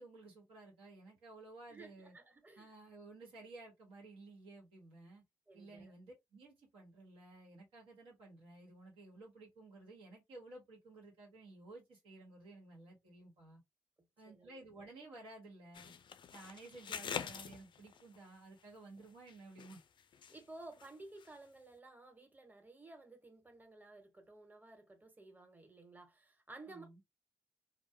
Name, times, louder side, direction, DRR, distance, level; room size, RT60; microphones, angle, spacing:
voice 1, 0.0-2.1 2.6-5.2 5.5-13.6 14.2-15.9 16.3-19.8 26.7-27.0, right 2 dB, 80° right, 1.1 m, -55 dB
voice 2, 1.7-2.7 5.5-5.9 14.3-14.6 20.3-27.0, right 2 dB, 15° right, 1.1 m, -55 dB
sound 1, 15.7-18.2 19.0-20.4 20.7-20.9 21.2-21.3, left 7 dB, 55° left, 0.3 m, -45 dB
2.2 x 2.0 x 2.8 m
hypercardioid pair, 45°, 10 cm